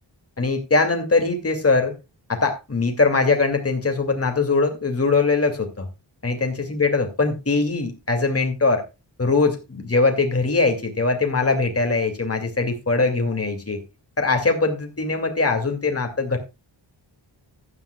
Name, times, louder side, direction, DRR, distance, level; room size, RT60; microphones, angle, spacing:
voice 1, 0.4-1.9 2.3-5.9 6.2-8.8 9.2-13.8 14.2-16.4, left 3 dB, 30° left, 4 dB, 2.5 m, -21 dB
15.0 x 11.0 x 2.3 m, 0.26 s
wide cardioid pair, 130°, 45 cm